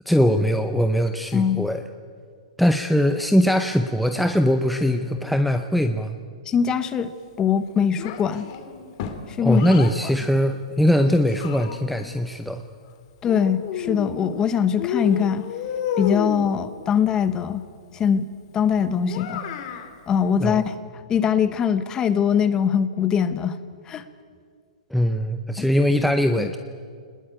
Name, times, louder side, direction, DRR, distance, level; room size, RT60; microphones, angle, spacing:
voice 1, 0.1-1.8 2.6-6.2 9.4-12.6 20.4-20.6 24.9-26.6, equal, ahead, 7 dB, 0.7 m, -21 dB
voice 2, 1.3-1.7 6.5-7.1 7.4-8.4 9.4-9.6 13.2-15.5 16.0-17.6 17.9-18.3 18.5-19.4 20.1-20.8 21.1-23.6 23.9-24.0 25.6-25.7 26.4-26.5, left 7 dB, 20° left, 13 dB, 1.0 m, -22 dB
Child speech kid speaking, 8.0-10.0 10.9-12.1 13.3-14.4 14.8-16.5 19.1-19.9, left 8 dB, 40° left, 2.5 m, -31 dB
24.0 x 20.5 x 8.9 m, 2.1 s
hypercardioid pair, 155°, 4 cm